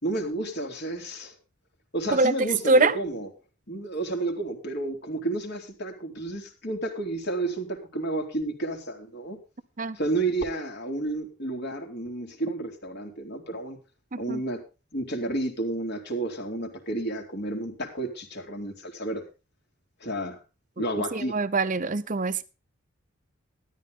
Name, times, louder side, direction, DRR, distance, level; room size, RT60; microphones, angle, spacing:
voice 1, 0.0-1.3 1.9-3.3 3.7-9.4 9.9-13.8 14.2-14.6 14.9-19.2 20.0-20.4 20.8-21.4, right 2 dB, 55° left, 2 dB, 3.4 m, -31 dB
voice 2, 2.1-3.0 9.8-10.0 14.1-14.4 20.8-20.9 21.1-22.4, right 3 dB, 40° right, 14 dB, 0.8 m, -24 dB
13.0 x 11.5 x 3.8 m, 0.31 s
head